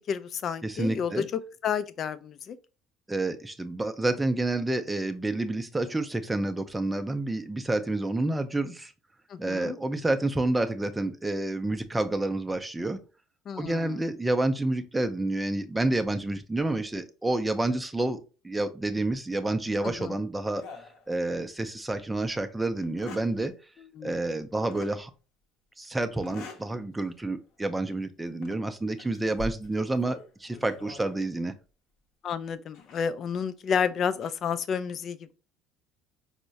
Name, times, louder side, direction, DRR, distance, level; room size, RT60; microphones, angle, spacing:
voice 1, 0.1-2.6 9.3-9.8 13.5-14.0 19.8-20.1 23.9-24.2 32.2-35.3, left 7 dB, 50° left, 0.3 m, -31 dB
voice 2, 0.6-1.3 3.1-8.9 9.4-13.0 13.6-20.7 21.1-23.5 24.0-25.1 25.8-31.5, right 2 dB, 15° right, 0.5 m, -29 dB
sound 1, 20.6-21.6 22.1-22.2 22.8-23.3 24.7-25.0 26.2-26.7 27.2-27.4 28.3-28.6 29.0-31.3 32.7-33.0 33.9-34.3, left 2 dB, 65° left, 0.7 m, -44 dB
4.4 x 2.1 x 2.7 m
hypercardioid pair, 75°, 0 cm